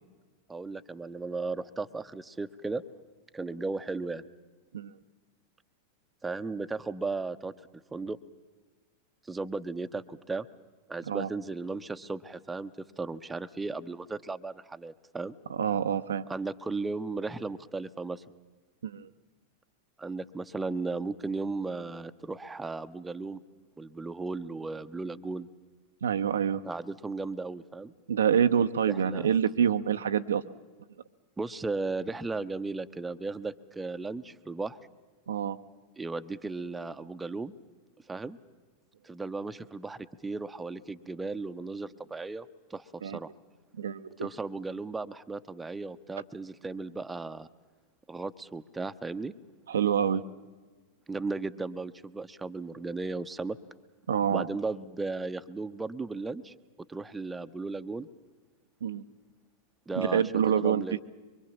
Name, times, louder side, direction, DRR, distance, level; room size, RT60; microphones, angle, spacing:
voice 1, 0.5-2.8 3.3-4.2 6.2-7.5 7.9-8.2 9.3-10.5 10.9-12.7 13.0-15.4 16.3-18.2 20.0-23.4 23.8-25.5 26.6-27.9 28.9-29.3 31.4-34.8 36.0-37.5 38.1-38.4 39.0-43.3 44.2-47.5 48.1-49.3 51.1-53.6 54.3-56.5 56.9-58.1 59.9-61.0, right 3 dB, 10° right, 9 dB, 0.8 m, -35 dB
voice 2, 15.5-16.2 18.8-19.1 26.0-26.6 28.1-30.4 35.3-35.6 43.0-43.2 43.8-44.3 49.7-50.2 54.1-54.5 58.8-59.0 60.0-60.8, right 8 dB, 65° right, 9 dB, 0.7 m, -26 dB
24.5 x 23.5 x 7.2 m, 1.4 s
figure-of-eight pair, 90°, 0 cm